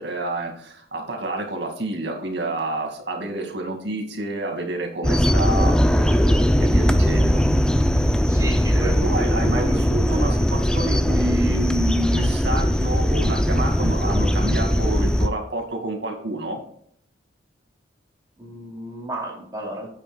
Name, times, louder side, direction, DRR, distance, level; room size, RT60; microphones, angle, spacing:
voice 1, 0.0-7.4 8.7-16.6, right 1 dB, 70° right, 2 dB, 2.1 m, -29 dB
sound 1, 5.0-15.3, equal, 5° left, 0.4 m, -20 dB
voice 2, 8.3-9.0 9.4-10.4 18.4-19.9, right 1 dB, 20° right, -3 dB, 3.1 m, -33 dB
9.7 x 8.6 x 2.3 m, 0.64 s
head